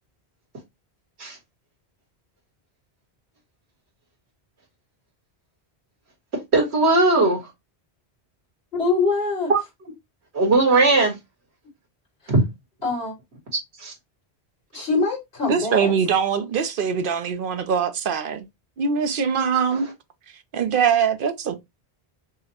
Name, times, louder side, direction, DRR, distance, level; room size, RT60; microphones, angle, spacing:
voice 1, 6.5-7.4 9.5-9.6 10.3-11.1 12.3-12.4 13.8-13.9, right 3 dB, 85° right, 1.8 m, -18 dB
voice 2, 8.7-9.5 12.8-13.1 14.7-15.9, left 3 dB, 65° left, 2.8 m, -23 dB
voice 3, 15.5-18.5 18.8-19.9 20.5-21.6, right 6 dB, 60° right, 0.7 m, -22 dB
5.6 x 2.1 x 2.8 m
omnidirectional pair, 1.1 m